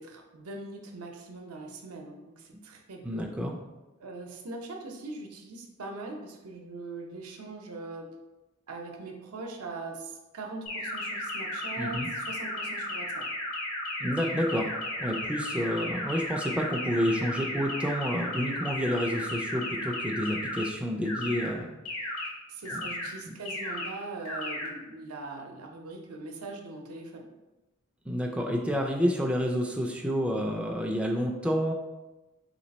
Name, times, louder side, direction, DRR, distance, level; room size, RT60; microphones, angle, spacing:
voice 1, 0.0-3.3 4.0-8.1 8.7-13.2 22.5-27.3, right 3 dB, 90° right, 2 dB, 0.7 m, -41 dB
voice 2, 3.0-3.6 11.8-12.1 14.0-14.7 15.0-21.7 22.7-22.8 23.3-23.4 28.1-31.7, equal, 5° right, 0 dB, 0.3 m, -29 dB
sound 1, 10.7-20.7 21.1-21.5 21.9-22.3 22.7-23.1 23.5-23.9 24.3-24.7, left 1 dB, 90° left, 1.3 m, -34 dB
3.3 x 3.0 x 4.0 m, 1.1 s
head